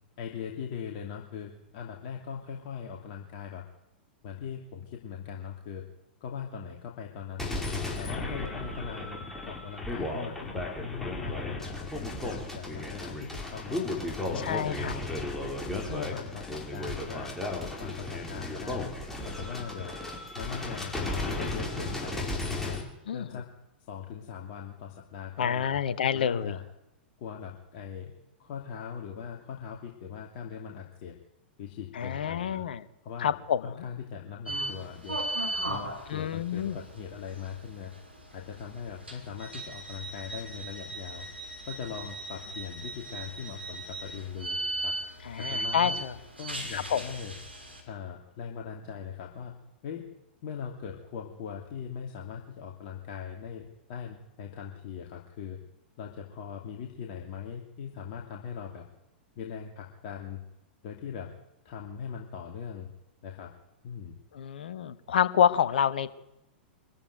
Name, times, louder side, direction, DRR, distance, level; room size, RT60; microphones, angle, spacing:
voice 1, 0.2-3.6 4.2-5.9 6.2-7.6 8.0-13.8 14.2-15.5 15.8-17.3 17.6-18.9 19.2-20.0 20.3-21.0 21.2-22.8 23.1-23.5 23.9-25.8 26.1-26.6 27.2-28.1 28.4-31.2 31.6-32.6 33.0-35.2 35.7-37.9 38.3-41.3 41.6-45.0 45.3-46.0 46.4-47.4 47.9-49.5 49.8-50.1 50.4-55.6 56.0-58.8 59.4-60.4 60.8-61.3 61.6-62.9 63.2-63.5 63.8-64.1, left 7 dB, 45° left, 1 dB, 2.7 m, -40 dB
sound 1, 7.4-22.8, left 2 dB, 5° left, 5.3 m, -35 dB
voice 2, 8.1-8.4 14.4-14.9 23.1-23.3 25.4-26.5 32.0-32.8 33.2-33.6 36.1-36.8 45.3-46.1 46.7-47.0 64.3-66.1, left 8 dB, 60° left, 13 dB, 1.4 m, -28 dB
sound 2, 34.5-47.8, right 2 dB, 85° right, 6.1 m, -38 dB
24.5 x 14.5 x 9.3 m, 0.89 s
figure-of-eight pair, 100°, 6 cm